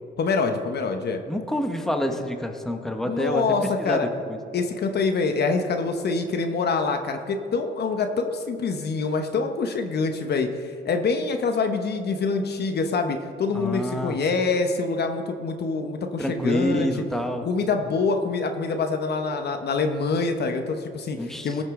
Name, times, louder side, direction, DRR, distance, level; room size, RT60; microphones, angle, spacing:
voice 1, 0.2-1.2 3.1-4.1 4.5-16.9 17.5-21.6, left 4 dB, 55° left, 6 dB, 1.0 m, -25 dB
voice 2, 1.3-4.4 13.5-14.2 16.2-17.5 21.2-21.6, equal, ahead, 5 dB, 1.0 m, -27 dB
18.5 x 6.4 x 3.7 m, 2.5 s
cardioid pair, 90°, 20 cm